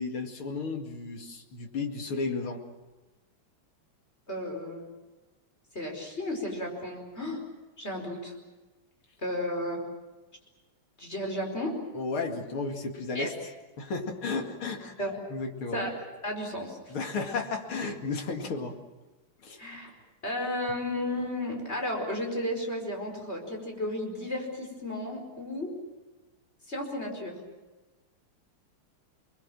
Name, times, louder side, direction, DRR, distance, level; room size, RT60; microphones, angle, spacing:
voice 1, 0.0-2.6 11.9-13.3 13.8-14.9 15.3-15.8 16.9-18.7 19.4-19.6, left 4 dB, 75° left, 4 dB, 3.1 m, -33 dB
voice 2, 4.3-4.8 5.7-7.4 7.8-8.4 9.2-9.8 11.0-11.7 13.1-13.3 15.0-15.2 15.7-15.9 16.2-16.8 19.6-19.9 20.2-25.7 26.7-27.4, left 1 dB, 30° left, 2 dB, 5.2 m, -33 dB
29.5 x 21.0 x 7.6 m, 1.2 s
omnidirectional pair, 2.3 m